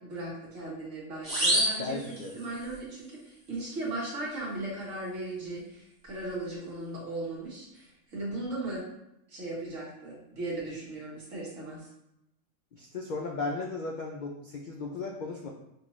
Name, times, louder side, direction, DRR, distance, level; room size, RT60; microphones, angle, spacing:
voice 1, 0.0-2.0 2.4-8.8 9.3-11.9, right 2 dB, 70° right, -5 dB, 1.7 m, -37 dB
sound 1, 1.2-2.8, right 1 dB, 30° right, 1.4 m, -29 dB
voice 2, 1.8-2.4 12.7-15.5, left 3 dB, 65° left, -1 dB, 0.5 m, -36 dB
5.9 x 2.4 x 3.1 m, 0.84 s
omnidirectional pair, 1.4 m